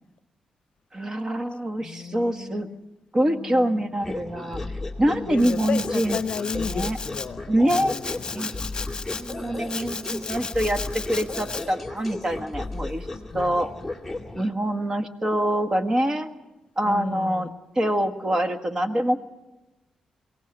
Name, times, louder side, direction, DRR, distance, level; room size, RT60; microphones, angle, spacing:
voice 1, 0.9-2.7 3.1-4.6 5.0-6.2 6.5-7.0 7.5-8.0 8.3-8.5 9.1-13.1 13.3-13.7 14.3-16.3 16.8-17.5 17.7-19.2, right 1 dB, 30° right, 1.7 m, -25 dB
voice 2, 1.8-2.8 3.3-3.9 5.0-8.5 13.3-13.6 16.8-17.5, left 6 dB, 60° left, 0.7 m, -34 dB
sound 1, 4.0-14.5, left 2 dB, ahead, 2.3 m, -35 dB
Domestic sounds home sounds, 5.4-7.3 7.7-9.3 9.7-11.6, left 4 dB, 35° left, 1.5 m, -34 dB
23.0 x 17.5 x 8.9 m
cardioid pair, 85°, 2 cm